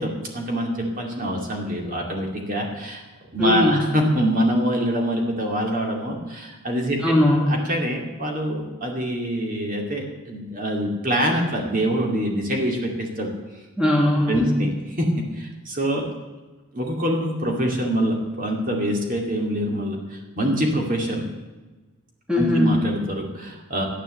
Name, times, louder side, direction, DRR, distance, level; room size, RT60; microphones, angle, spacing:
voice 1, 0.0-3.0 3.3-7.0 7.5-13.3 14.3-14.7 15.0-15.1 15.4-16.1 16.7-21.3 22.3-23.8, equal, 40° right, 1 dB, 2.4 m, -25 dB
voice 2, 3.4-3.9 7.0-7.6 13.8-14.6 22.3-22.8, left 1 dB, 5° right, -2 dB, 2.2 m, -20 dB
13.5 x 9.9 x 7.8 m, 1.2 s
head